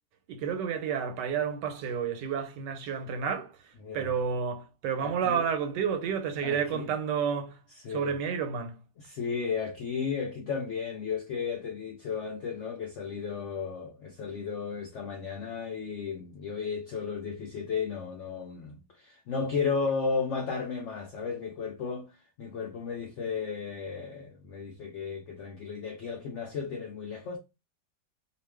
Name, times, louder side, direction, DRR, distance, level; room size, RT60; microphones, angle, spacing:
voice 1, 0.3-3.5 3.9-7.6 7.9-8.8, right 7 dB, 85° right, 1.3 m, -30 dB
voice 2, 3.8-4.1 5.0-5.5 6.4-6.9 7.8-8.2 9.0-22.1 22.4-27.4, left 5 dB, 80° left, 0.6 m, -34 dB
2.5 x 2.3 x 3.3 m
omnidirectional pair, 1.8 m